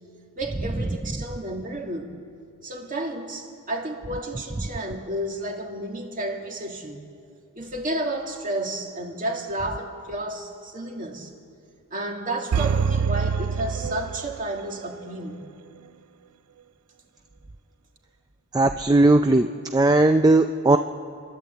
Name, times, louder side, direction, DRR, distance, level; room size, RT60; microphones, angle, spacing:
voice 1, 0.4-2.2 2.6-7.1 7.6-11.3 11.9-15.4, right 1 dB, 35° right, 1 dB, 2.1 m, -31 dB
sound 1, 12.5-14.7 15.0-15.1, right 6 dB, 85° right, 0.4 m, -25 dB
voice 2, 18.5-19.5 19.7-20.8, right 2 dB, 15° right, 7 dB, 0.4 m, -17 dB
29.0 x 11.5 x 8.1 m, 2.4 s
head